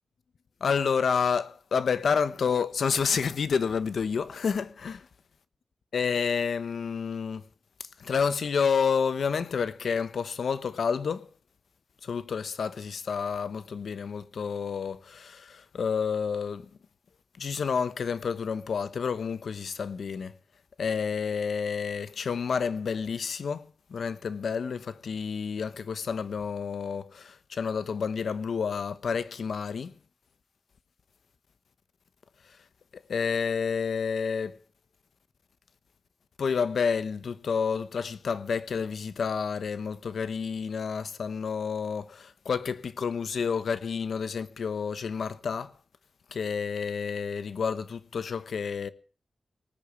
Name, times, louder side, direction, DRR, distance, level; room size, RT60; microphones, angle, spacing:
voice 1, 0.6-5.1 5.9-7.4 8.0-11.3 12.0-16.7 17.4-20.4 20.8-29.9 32.9-34.6 36.4-45.7 46.3-48.9, left 6 dB, 85° left, 1.0 m, -29 dB
19.0 x 6.9 x 8.4 m
wide cardioid pair, 165°, 0 cm